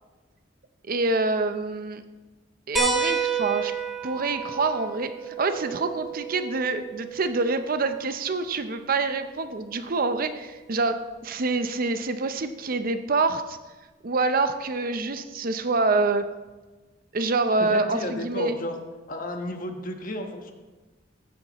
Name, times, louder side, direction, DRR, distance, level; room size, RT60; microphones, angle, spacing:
voice 1, 0.9-2.0 2.7-3.7 4.0-13.6 14.0-16.3 17.1-18.6, right 3 dB, 50° right, 9 dB, 0.7 m, -26 dB
sound 1, 2.7-7.8 9.4-9.5 11.1-11.2, right 5 dB, ahead, 1.7 m, -31 dB
voice 2, 17.7-18.7 19.1-20.5, left 1 dB, 50° left, 4 dB, 1.3 m, -33 dB
15.5 x 9.7 x 3.0 m, 1.2 s
head